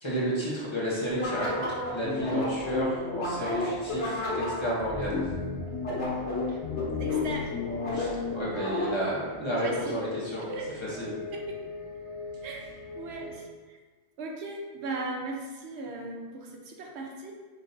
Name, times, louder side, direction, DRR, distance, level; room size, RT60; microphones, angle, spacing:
voice 1, 0.0-5.2 7.9-10.5 10.8-11.1, equal, 30° left, -7 dB, 0.8 m, -31 dB
sound 1, 1.1-9.2, left 3 dB, 90° left, 1.5 m, -31 dB
sound 2, 3.3-13.4, left 3 dB, 70° left, 1.2 m, -42 dB
voice 2, 6.9-7.6 9.6-10.1 10.5-10.8 11.3-11.6 12.4-12.6 13.0-13.8 14.2-17.3, right 2 dB, 75° right, 1 dB, 0.9 m, -37 dB
5.6 x 2.6 x 2.6 m, 1.4 s
omnidirectional pair, 1.1 m